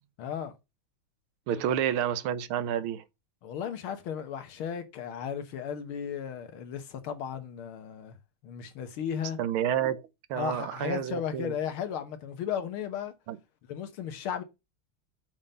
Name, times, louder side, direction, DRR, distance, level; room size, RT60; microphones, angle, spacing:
voice 1, 0.2-0.5 1.7-1.8 3.4-8.1 8.4-9.4 10.3-13.1 13.7-14.4, left 8 dB, 75° left, 1.9 m, -35 dB
voice 2, 1.5-3.0 9.4-11.5 13.3-13.4, right 10 dB, 75° right, 1.6 m, -30 dB
7.2 x 3.8 x 5.3 m
omnidirectional pair, 2.4 m